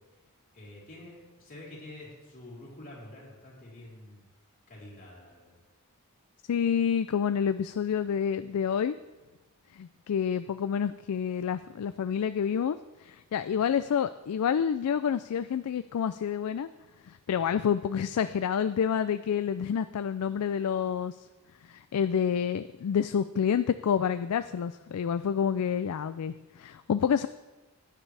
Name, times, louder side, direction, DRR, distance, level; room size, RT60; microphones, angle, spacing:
voice 1, 0.5-4.2 4.7-5.6, left 1 dB, 40° left, -5 dB, 3.9 m, -48 dB
voice 2, 6.5-9.0 9.7-16.7 17.1-21.2 21.7-27.3, left 7 dB, 85° left, 12 dB, 0.4 m, -28 dB
15.5 x 9.8 x 3.4 m, 1.1 s
head